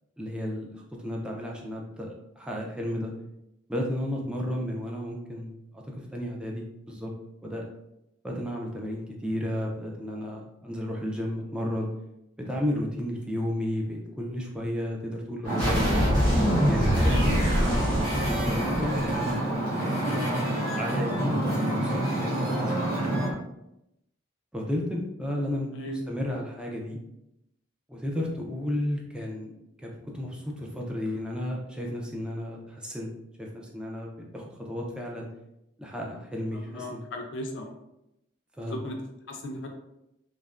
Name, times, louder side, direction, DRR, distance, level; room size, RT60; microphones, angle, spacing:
voice 1, 0.2-2.1 2.4-3.1 3.7-7.1 7.4-7.7 8.2-11.9 12.5-15.8 16.7-17.9 18.3-19.5 19.8-20.5 20.8-23.2 24.5-27.0 27.9-29.5 29.8-33.1 33.4-35.3 35.8-37.0 38.6-38.8, left 1 dB, 5° right, -2 dB, 0.4 m, -33 dB
Wind / Ocean, 15.4-23.3, right 1 dB, 45° right, 1.0 m, -28 dB
sound 1, 15.6-19.3, equal, 20° right, 1.1 m, -25 dB
voice 2, 36.7-37.7 38.6-39.0 39.3-39.7, left 1 dB, 65° left, 2 dB, 0.5 m, -36 dB
3.2 x 2.1 x 2.4 m, 0.84 s
head